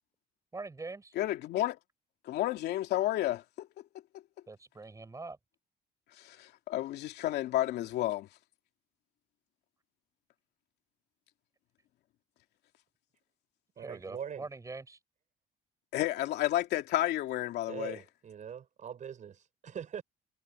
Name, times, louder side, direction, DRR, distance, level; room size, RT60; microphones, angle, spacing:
voice 1, 0.5-1.1 4.5-5.4 13.8-15.0, right 3 dB, 20° right, 7.7 m, -43 dB
voice 2, 1.2-1.8 2.2-3.7 6.2-8.3 15.9-18.0, left 14 dB, 80° left, 2.8 m, -31 dB
voice 3, 13.8-14.5 17.7-20.0, right 8 dB, 45° right, 7.5 m, -42 dB
cardioid pair, 110°, 17 cm